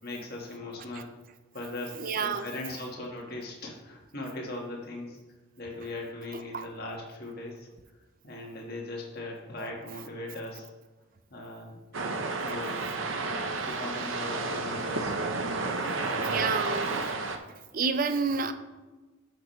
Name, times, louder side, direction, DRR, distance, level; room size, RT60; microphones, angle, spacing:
voice 1, 0.0-1.1 1.5-5.2 5.6-7.7 8.2-10.7 11.3-15.1 15.6-16.5 16.8-16.9, left 2 dB, 50° left, -1 dB, 1.5 m, -39 dB
voice 2, 2.0-2.5 6.5-6.6 16.2-17.1 17.7-18.5, right 5 dB, 45° right, 10 dB, 0.5 m, -29 dB
sound 1, 11.9-17.4, right 3 dB, 75° right, 0.7 m, -31 dB
11.0 x 6.0 x 3.2 m, 1.2 s
head